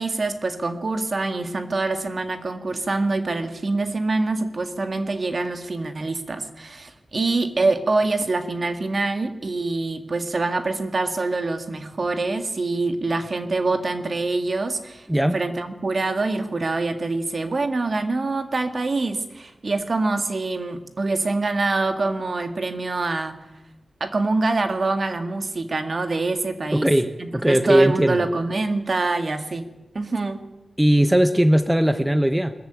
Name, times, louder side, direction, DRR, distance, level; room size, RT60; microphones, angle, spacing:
voice 1, 0.0-15.1 15.3-23.3 24.0-26.9 27.2-29.7 29.9-30.5, right 3 dB, 50° right, 8 dB, 1.9 m, -25 dB
voice 2, 26.7-28.3 30.8-32.5, right 1 dB, 10° right, 10 dB, 0.9 m, -19 dB
21.0 x 14.0 x 8.9 m, 1.0 s
wide cardioid pair, 85°, 0 cm